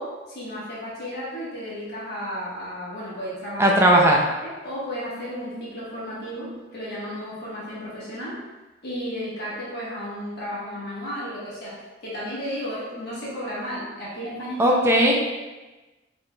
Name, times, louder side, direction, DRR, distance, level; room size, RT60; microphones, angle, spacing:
voice 1, 0.0-3.8 4.2-8.4 8.8-14.8, equal, 55° left, -8 dB, 1.2 m, -33 dB
voice 2, 3.6-4.2 14.6-15.3, right 1 dB, 15° right, -1 dB, 0.5 m, -17 dB
4.7 x 3.1 x 2.2 m, 1.1 s
head